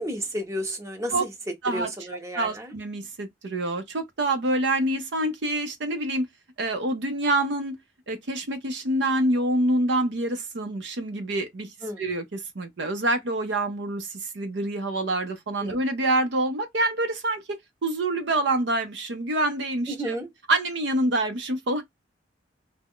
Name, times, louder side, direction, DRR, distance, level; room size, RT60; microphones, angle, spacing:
voice 1, 0.0-2.7 11.8-12.0 15.6-15.8 19.9-20.3, right 1 dB, 15° right, 0.7 m, -32 dB
voice 2, 2.3-6.3 6.6-7.8 8.1-11.7 12.0-20.2 20.5-21.8, right 1 dB, 70° right, 0.6 m, -26 dB
2.3 x 2.1 x 3.5 m
head